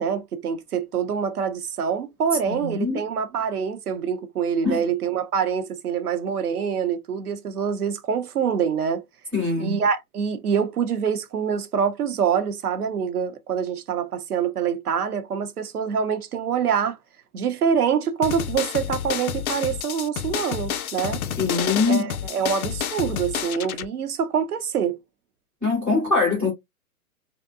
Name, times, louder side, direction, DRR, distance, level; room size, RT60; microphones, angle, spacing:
voice 1, 0.0-9.0 9.6-17.0 17.3-21.2 21.9-25.0, right 7 dB, 80° right, 0.7 m, -25 dB
voice 2, 2.5-3.0 4.6-4.8 9.3-9.8 21.4-22.1 25.6-26.5, left 4 dB, 5° left, 0.4 m, -23 dB
sound 1, 18.2-23.9, left 8 dB, 70° left, 0.5 m, -29 dB
2.7 x 2.1 x 2.3 m
hypercardioid pair, 135°, 44 cm